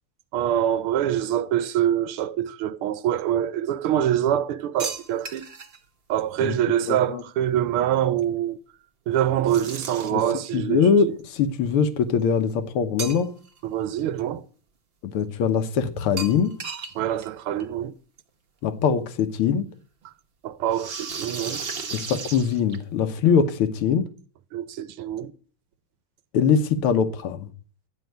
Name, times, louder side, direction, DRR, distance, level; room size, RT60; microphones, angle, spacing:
voice 1, 0.3-5.4 6.1-8.6 9.1-11.1 13.6-14.4 16.9-17.9 20.4-21.6 24.5-25.3, right 11 dB, 85° right, 1.7 m, -25 dB
sound 1, 4.8-5.8 9.5-10.3 13.0-13.6 13.9-14.0 16.2-17.0 17.2-17.3 17.6-17.7 18.9-19.0 20.7-23.0, right 5 dB, 40° right, 0.8 m, -34 dB
voice 2, 6.9-7.2 10.1-10.2 10.5-13.4 15.0-16.6 18.6-19.7 21.9-24.1 26.3-27.5, left 6 dB, 85° left, 2.0 m, -22 dB
13.0 x 5.6 x 9.3 m
omnidirectional pair, 2.3 m